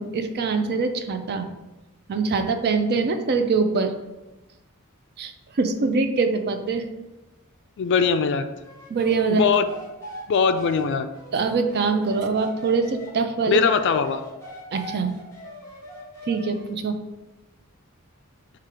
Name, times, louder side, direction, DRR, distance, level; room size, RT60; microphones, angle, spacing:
voice 1, 0.0-1.5 2.1-3.9 5.2-6.9 8.9-9.4 11.3-13.6 14.7-15.1 16.3-17.0, right 4 dB, 45° right, 7 dB, 0.4 m, -23 dB
voice 2, 7.8-8.5 9.3-9.7 10.3-11.1 13.5-14.2, left 6 dB, 55° left, 9 dB, 0.3 m, -21 dB
sound 1, 8.6-13.1 13.5-16.7, equal, 15° left, 1.2 m, -41 dB
4.4 x 2.4 x 4.8 m, 1.0 s
head